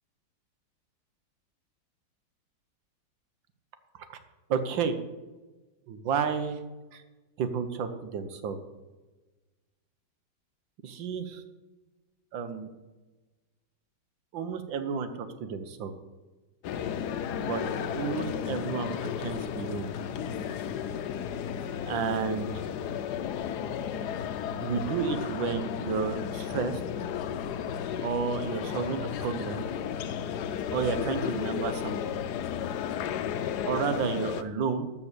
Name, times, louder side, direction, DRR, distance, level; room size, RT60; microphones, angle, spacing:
voice 1, 4.5-5.0 5.9-6.6 6.9-7.0 7.4-8.6 10.8-11.4 12.3-12.7 14.3-15.9 17.4-17.6 17.9-19.9 21.8-22.5 24.6-26.8 28.0-29.7 30.7-32.0 33.6-34.9, right 6 dB, 75° right, 10 dB, 1.7 m, -31 dB
sound 1, 16.6-34.4, left 8 dB, 70° left, 1.1 m, -33 dB
13.0 x 5.9 x 6.8 m, 1.2 s
omnidirectional pair, 2.1 m